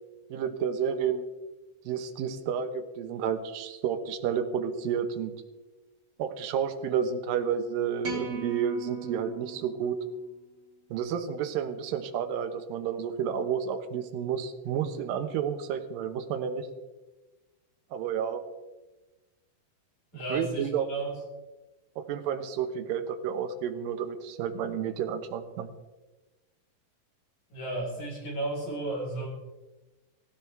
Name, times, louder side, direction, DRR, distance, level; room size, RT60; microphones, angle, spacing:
voice 1, 0.3-1.3 1.9-5.3 6.2-10.0 10.9-16.7 17.9-18.4 20.3-20.9 22.0-25.7, right 8 dB, 70° right, 6 dB, 2.6 m, -31 dB
sound 1, 8.0-10.4, right 5 dB, 50° right, 1.2 m, -39 dB
voice 2, 20.1-21.2 27.5-29.3, right 2 dB, 50° left, -2 dB, 5.5 m, -33 dB
17.5 x 16.0 x 3.4 m, 1.1 s
omnidirectional pair, 4.5 m